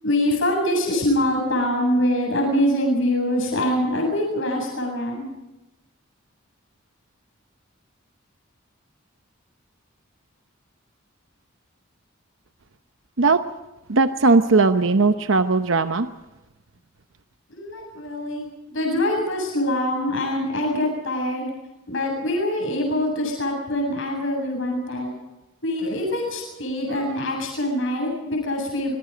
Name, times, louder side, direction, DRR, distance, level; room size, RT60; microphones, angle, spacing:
voice 1, 0.0-5.2 17.5-21.5 21.9-25.1 25.6-28.9, left 1 dB, 65° left, -1 dB, 7.8 m, -24 dB
voice 2, 13.9-16.1 26.9-27.2, right 3 dB, 70° right, 9 dB, 0.9 m, -19 dB
26.5 x 22.0 x 5.2 m, 1.0 s
head